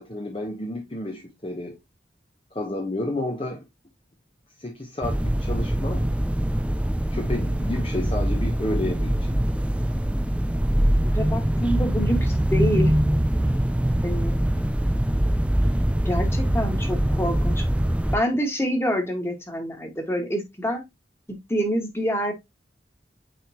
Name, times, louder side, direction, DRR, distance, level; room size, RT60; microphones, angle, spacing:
voice 1, 0.0-1.8 2.5-3.6 4.6-6.1 7.1-9.4, left 1 dB, 30° left, 1.0 m, -31 dB
sound 1, 5.0-18.2, right 1 dB, 5° right, 0.3 m, -23 dB
voice 2, 11.0-12.9 14.0-14.4 16.0-17.6 18.1-20.8 21.3-22.3, equal, 15° left, 1.7 m, -27 dB
9.1 x 3.5 x 2.9 m
head